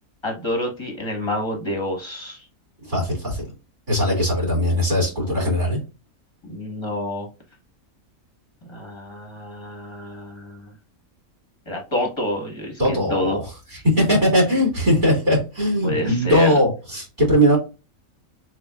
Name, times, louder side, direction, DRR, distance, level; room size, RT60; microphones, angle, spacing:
voice 1, 0.2-2.4 5.2-5.6 6.4-7.3 8.7-10.7 11.7-13.4 15.8-16.5, left 1 dB, 20° left, 1 dB, 1.3 m, -28 dB
voice 2, 2.9-3.4 3.9-5.8 12.8-13.4 14.0-17.6, equal, 35° right, -3 dB, 2.7 m, -19 dB
7.0 x 2.5 x 2.4 m, 0.30 s
omnidirectional pair, 1.4 m